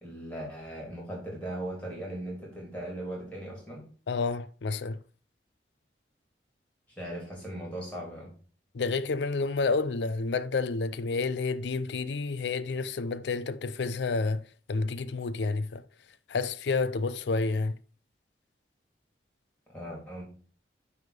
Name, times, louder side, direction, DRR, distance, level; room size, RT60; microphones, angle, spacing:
voice 1, 0.0-3.8 7.0-8.3 19.7-20.2, right 1 dB, 10° left, 3.2 m, -38 dB
voice 2, 4.1-5.0 8.7-14.4 14.7-15.8 16.3-17.8, left 4 dB, 75° left, 0.5 m, -29 dB
9.5 x 3.6 x 5.0 m
head